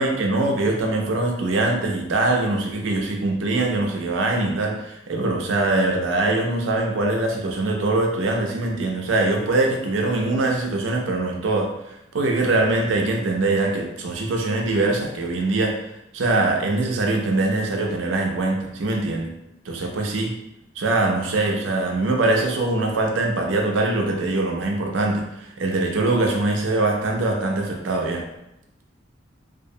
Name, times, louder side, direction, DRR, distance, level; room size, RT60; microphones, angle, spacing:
voice 1, 0.0-15.8 16.1-19.3 19.7-20.3 20.8-28.2, right 2 dB, 85° right, 1 dB, 0.5 m, -23 dB
2.4 x 2.1 x 2.6 m, 0.85 s
head